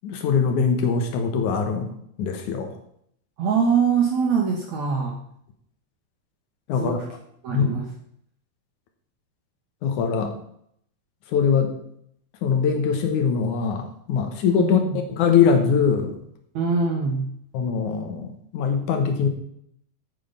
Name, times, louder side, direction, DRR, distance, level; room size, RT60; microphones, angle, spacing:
voice 1, 0.0-1.9 2.2-2.7 6.7-7.0 7.5-7.7 9.8-10.4 11.3-11.7 12.4-16.2 17.5-19.3, left 6 dB, 70° left, 5 dB, 1.9 m, -22 dB
voice 2, 3.4-5.2 6.8-7.1 7.4-7.8 14.6-15.0 16.5-17.3, right 5 dB, 75° right, 0 dB, 1.6 m, -23 dB
8.7 x 7.6 x 5.7 m, 0.69 s
omnidirectional pair, 5.1 m